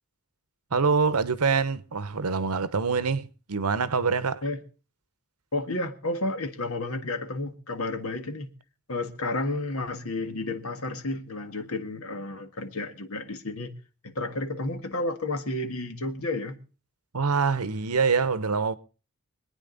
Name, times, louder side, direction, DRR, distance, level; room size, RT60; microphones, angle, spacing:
voice 1, 0.7-4.4 17.1-18.8, right 5 dB, 85° right, 0.9 m, -25 dB
voice 2, 5.5-8.5 8.9-13.7 14.0-16.6, left 2 dB, 70° left, 1.8 m, -31 dB
25.0 x 9.4 x 3.9 m
head